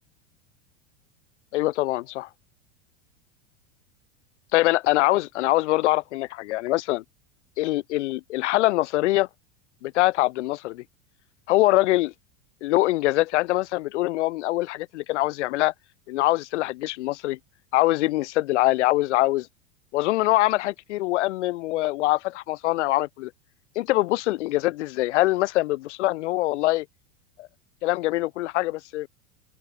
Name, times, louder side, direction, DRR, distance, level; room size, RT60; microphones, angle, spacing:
voice 1, 1.5-2.3 4.5-7.0 7.6-9.3 9.8-10.8 11.5-12.1 12.6-15.7 16.1-17.4 17.7-19.5 19.9-23.3 23.8-26.9 27.4-27.5 27.8-29.1, left 18 dB, 70° left, 7.4 m, -23 dB
hypercardioid pair, 105°, 36 cm